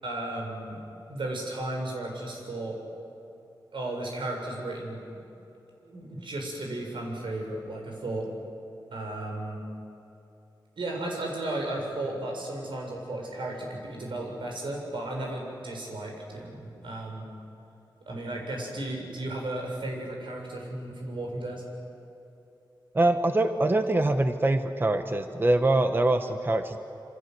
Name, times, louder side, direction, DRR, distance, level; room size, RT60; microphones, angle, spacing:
voice 1, 0.0-0.8 1.1-2.8 3.7-5.2 5.8-8.3 8.9-9.6 10.8-17.3 18.1-21.6, right 1 dB, 90° right, 0 dB, 7.1 m, -34 dB
voice 2, 22.9-26.8, right 2 dB, 25° right, 7 dB, 1.2 m, -24 dB
28.0 x 26.5 x 7.9 m, 2.8 s
wide cardioid pair, 115°, 8 cm